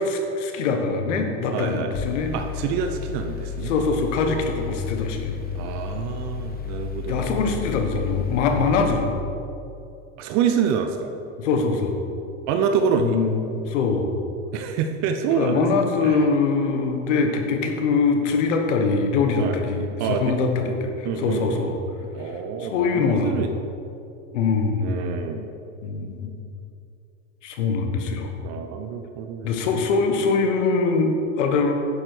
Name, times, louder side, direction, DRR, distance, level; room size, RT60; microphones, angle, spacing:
voice 1, 0.0-2.3 3.6-5.3 7.1-9.1 11.4-12.0 13.0-14.1 15.3-21.8 22.6-23.4 24.3-25.0 25.8-26.4 27.4-28.4 29.4-31.7, left 4 dB, 70° left, 4 dB, 1.5 m, -23 dB
voice 2, 1.5-1.9 2.3-3.7 5.5-7.5 10.2-11.1 12.5-13.2 14.5-15.7 16.0-16.2 19.4-19.6 20.0-20.4 21.0-21.7 22.1-23.5 24.8-25.5 28.4-29.5, right 7 dB, 45° right, 6 dB, 0.9 m, -26 dB
Mechanical fan, 2.0-8.9, left 7 dB, 25° left, 1.0 m, -32 dB
10.5 x 7.8 x 4.6 m, 2.7 s
hypercardioid pair, 100°, 37 cm